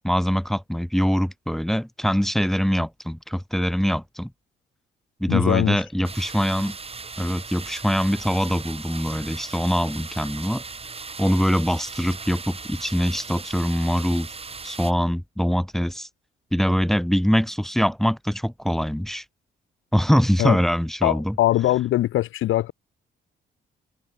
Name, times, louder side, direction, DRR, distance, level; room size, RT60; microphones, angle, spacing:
voice 1, 0.0-4.3 5.2-6.8 7.2-10.6 11.2-14.3 14.6-16.1 16.5-19.2 19.9-21.3, equal, ahead, 4.0 m, -23 dB
voice 2, 5.3-5.8 20.4-20.6 21.0-22.7, left 14 dB, 85° left, 2.1 m, -21 dB
sound 1, 6.0-14.9, right 4 dB, 30° right, 5.2 m, -38 dB
cardioid pair, 90°, 20 cm